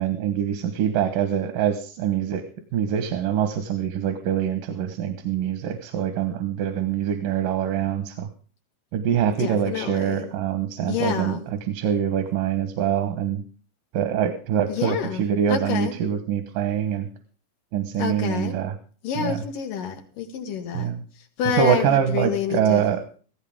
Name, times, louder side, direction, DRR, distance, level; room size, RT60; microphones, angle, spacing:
voice 1, 0.0-2.4 2.7-8.3 8.9-11.3 11.7-13.4 13.9-17.1 17.7-18.7 19.2-19.4 20.7-21.0 21.5-23.0, right 9 dB, 90° right, 8 dB, 3.0 m, -24 dB
voice 2, 9.4-10.3 10.9-11.5 14.7-15.9 18.0-18.6 19.0-22.8, left 7 dB, 90° left, 5 dB, 3.6 m, -28 dB
16.0 x 15.5 x 3.6 m, 0.40 s
omnidirectional pair, 3.7 m